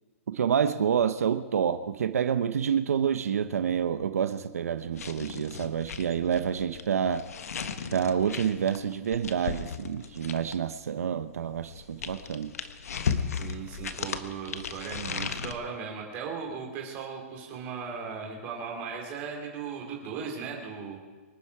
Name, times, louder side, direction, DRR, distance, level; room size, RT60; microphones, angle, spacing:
voice 1, 0.3-7.3 7.9-12.5, right 8 dB, 90° right, 9 dB, 0.9 m, -28 dB
sound 1, 4.9-10.7 11.6-15.5, left 6 dB, 85° left, 1.4 m, -35 dB
voice 2, 13.3-21.0, right 6 dB, 20° right, 0 dB, 3.2 m, -37 dB
25.5 x 10.0 x 4.9 m, 1.4 s
hypercardioid pair, 180°, 8 cm